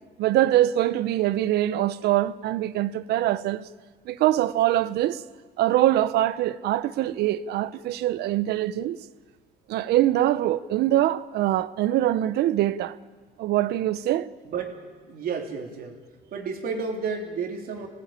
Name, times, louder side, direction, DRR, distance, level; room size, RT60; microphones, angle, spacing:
voice 1, 0.2-3.6 4.1-5.2 5.6-9.0 9.7-13.0 13.4-14.3, right 13 dB, 75° right, 0.8 m, -23 dB
voice 2, 14.4-16.0 16.3-17.9, right 5 dB, 60° right, 3.4 m, -32 dB
25.0 x 18.0 x 8.9 m
cardioid pair, 110°, 17 cm